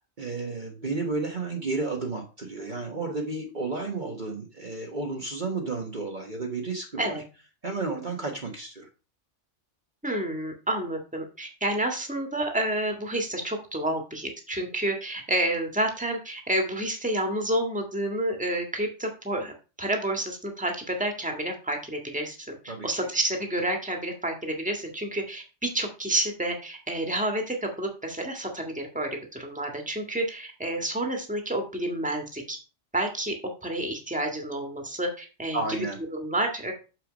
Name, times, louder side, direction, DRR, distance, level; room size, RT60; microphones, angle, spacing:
voice 1, 0.2-7.2 7.6-8.9 22.7-22.9 35.5-36.0, right 3 dB, 40° right, 1 dB, 1.4 m, -32 dB
voice 2, 10.0-32.6 32.9-33.3 33.6-35.8 36.1-36.7, right 1 dB, 5° right, 3 dB, 1.7 m, -29 dB
6.8 x 6.0 x 5.1 m, 0.33 s
omnidirectional pair, 1.2 m